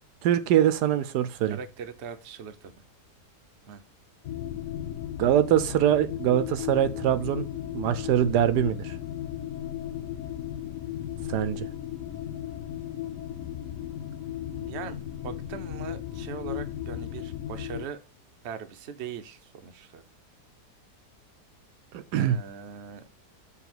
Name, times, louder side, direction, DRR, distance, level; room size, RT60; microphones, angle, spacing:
voice 1, 0.2-1.6 5.2-7.5 7.7-8.9 11.3-11.7 21.9-22.4, right 11 dB, 80° right, 1.1 m, -23 dB
voice 2, 1.5-2.7 3.7-3.8 14.5-18.0 18.4-20.0 22.2-23.0, right 7 dB, 50° right, 0.9 m, -40 dB
sound 1, 4.2-17.9, left 11 dB, 65° left, 0.9 m, -35 dB
7.1 x 3.5 x 6.0 m
omnidirectional pair, 1.8 m